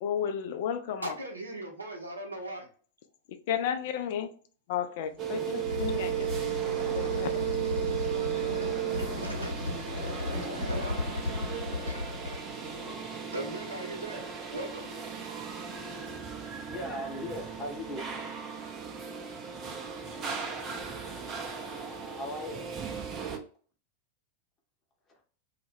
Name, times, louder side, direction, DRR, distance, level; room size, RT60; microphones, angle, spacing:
voice 1, 0.0-1.2 3.5-4.3 4.7-6.3 6.9-7.4, left 8 dB, 50° left, 0.3 m, -32 dB
voice 2, 1.0-2.7 9.2-9.6 10.4-11.3 11.8-12.1 13.3-14.2 14.5-14.9, right 1 dB, 80° right, 0.6 m, -39 dB
sound 1, 5.0-13.0, left 2 dB, 75° left, 0.7 m, -35 dB
sound 2, 5.2-23.4, right 8 dB, 30° right, 0.5 m, -36 dB
voice 3, 16.7-18.1 22.1-22.6 25.1-25.2, left 1 dB, 25° left, 0.7 m, -38 dB
2.1 x 2.1 x 3.2 m
figure-of-eight pair, 90°, 0 cm